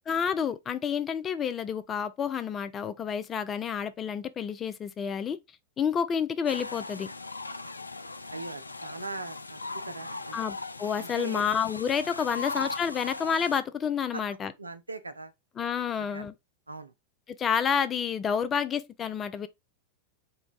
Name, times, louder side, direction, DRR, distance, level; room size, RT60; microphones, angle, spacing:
voice 1, 0.1-5.4 5.8-7.1 10.3-14.5 15.6-16.3 17.4-19.5, left 7 dB, 25° left, 0.5 m, -29 dB
sound 1, 6.4-13.6, left 3 dB, 80° left, 0.3 m, -39 dB
voice 2, 8.3-9.6 9.9-10.4 11.0-11.5 12.4-12.5 14.1-14.2 14.6-15.3 16.0-16.3 16.7-16.9, right 3 dB, 80° right, 0.5 m, -40 dB
3.8 x 2.2 x 4.0 m
figure-of-eight pair, 90°, 0 cm